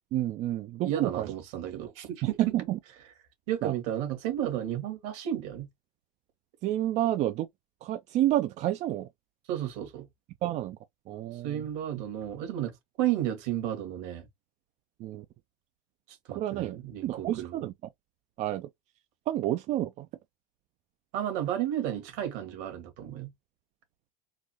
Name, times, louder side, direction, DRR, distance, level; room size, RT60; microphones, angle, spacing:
voice 1, 0.1-1.3 2.2-2.8 3.6-3.7 6.6-7.5 7.8-9.1 10.4-10.8 11.1-11.6 15.0-15.2 16.3-17.7 18.4-18.7 19.3-20.1, right 13 dB, 40° right, 0.4 m, -29 dB
voice 2, 0.8-2.4 3.5-5.7 9.5-10.1 11.4-14.3 16.3-17.6 21.1-23.3, right 11 dB, 65° right, 1.8 m, -32 dB
3.9 x 2.5 x 2.9 m
hypercardioid pair, 100°, 18 cm